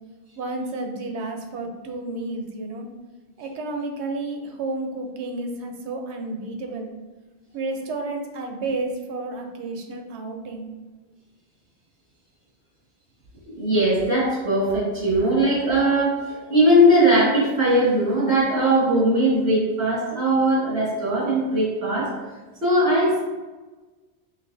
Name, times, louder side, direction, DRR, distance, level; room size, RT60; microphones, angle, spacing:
voice 1, 0.4-2.9 3.4-6.9 7.5-10.7, right 2 dB, 90° right, 3 dB, 0.9 m, -31 dB
voice 2, 13.5-22.1 22.6-23.2, right 1 dB, 65° right, -7 dB, 1.9 m, -20 dB
5.3 x 2.5 x 2.6 m, 1.2 s
omnidirectional pair, 1.1 m